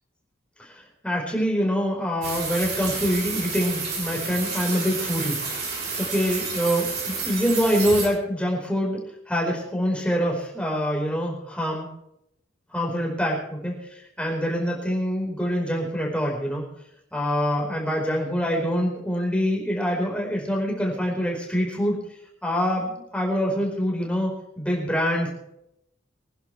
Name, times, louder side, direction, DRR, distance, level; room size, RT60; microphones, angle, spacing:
voice 1, 0.6-5.4 5.9-9.0 9.3-11.9 12.7-16.6 17.1-22.0 22.4-25.3, equal, 5° left, -2 dB, 4.8 m, -25 dB
sound 1, 2.2-8.1, right 4 dB, 55° right, 6.6 m, -30 dB
25.5 x 11.0 x 3.4 m, 0.78 s
head